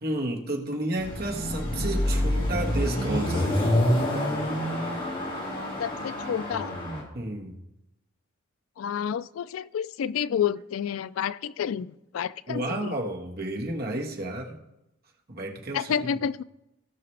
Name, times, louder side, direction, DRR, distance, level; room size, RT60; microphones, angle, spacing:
voice 1, 0.0-3.7 7.1-7.5 12.5-14.6 15.3-16.1, right 1 dB, 45° right, 1 dB, 1.4 m, -31 dB
Car passing by / Accelerating revving vroom, 1.0-7.0, left 1 dB, 40° left, 2.5 m, -27 dB
voice 2, 5.8-6.8 8.8-12.9 15.7-16.4, left 8 dB, 80° left, 18 dB, 0.3 m, -30 dB
17.0 x 5.9 x 3.3 m, 0.88 s
head